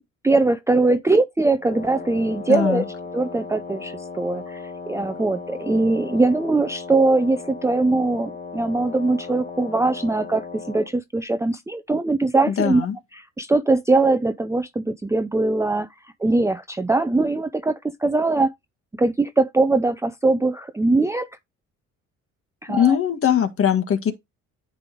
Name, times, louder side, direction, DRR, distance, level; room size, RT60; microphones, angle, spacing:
voice 1, 0.2-2.8 3.1-12.9 13.1-15.9 16.2-18.5 19.0-21.3 22.6-23.0, right 3 dB, 10° right, 0.5 m, -21 dB
Wind instrument woodwind instrument, 1.6-10.9, left 4 dB, 30° left, 1.5 m, -37 dB
voice 2, 2.5-2.8 12.6-13.0 22.7-24.1, left 8 dB, 45° left, 1.6 m, -20 dB
9.5 x 3.4 x 3.8 m
cardioid pair, 90°, 30 cm